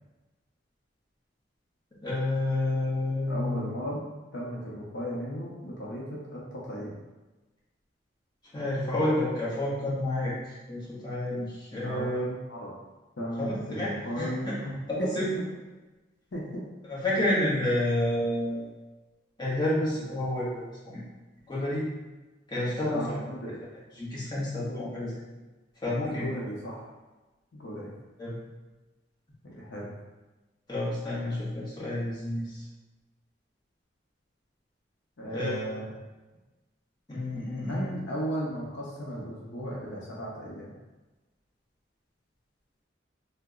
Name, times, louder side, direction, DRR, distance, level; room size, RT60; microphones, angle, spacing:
voice 1, 2.0-3.6 8.5-12.2 13.4-13.9 14.2-14.5 14.9-15.3 16.9-18.7 19.4-21.0 21.5-21.9 22.5-23.2 24.0-25.2 25.8-26.3 28.2-28.4 30.7-32.6 35.3-35.7 37.1-37.9, left 1 dB, 25° left, -8 dB, 0.9 m, -29 dB
voice 2, 3.3-4.1 4.3-7.0 11.8-12.8 13.2-15.4 16.3-16.7 22.9-23.6 26.0-26.9 27.5-27.9 29.4-29.9 35.2-35.9 37.6-40.7, equal, 70° left, -4 dB, 0.6 m, -35 dB
2.8 x 2.1 x 3.6 m, 1.2 s
head